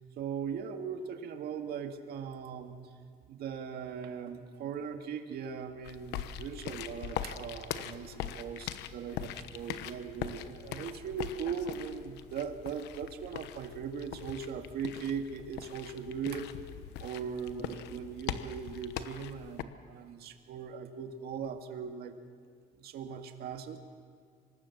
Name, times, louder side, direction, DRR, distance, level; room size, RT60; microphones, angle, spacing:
voice 1, 0.2-2.8 3.3-16.5 17.0-22.1 22.8-23.8, right 6 dB, 70° right, 5 dB, 2.0 m, -39 dB
sound 1, 5.8-19.6, left 10 dB, 85° left, 1.1 m, -42 dB
25.5 x 19.5 x 7.3 m, 2.1 s
cardioid pair, 110°, 17 cm